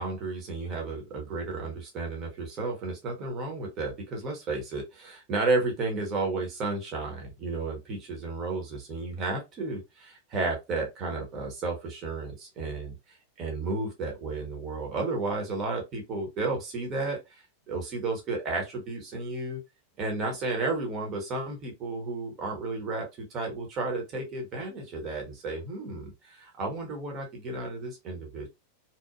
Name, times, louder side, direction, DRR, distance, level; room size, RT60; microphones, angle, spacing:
voice 1, 0.0-13.0 13.4-19.6 20.0-28.5, right 3 dB, 35° right, 1 dB, 0.9 m, -32 dB
2.9 x 2.1 x 2.4 m, 0.22 s
figure-of-eight pair, 90°, 0 cm